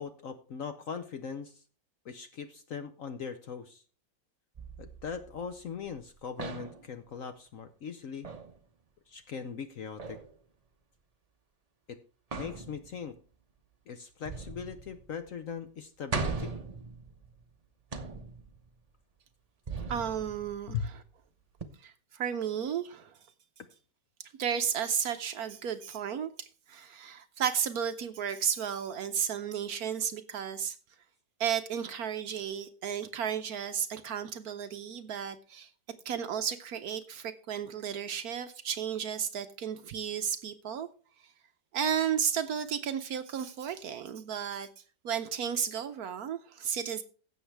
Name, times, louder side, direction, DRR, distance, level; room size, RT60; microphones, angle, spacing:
voice 1, 0.0-1.6 2.0-3.8 4.8-8.3 9.1-10.2 11.9-12.0 12.4-13.2 13.9-16.5 20.7-20.9, left 6 dB, 60° left, 0.9 m, -40 dB
sound 1, 4.6-6.0 6.4-7.0 8.2-8.6 10.0-10.3 12.3-13.2 14.3-15.3 15.6-15.7 16.1-17.5 17.9-18.7 19.7-21.0 21.6-21.7, right 4 dB, 35° right, 0.6 m, -39 dB
voice 2, 19.9-20.9 21.8-23.2 24.2-30.8 31.4-35.7 36.0-40.9 41.7-44.7 45.0-47.0, right 8 dB, 65° right, 1.0 m, -33 dB
16.0 x 7.2 x 3.3 m
omnidirectional pair, 2.0 m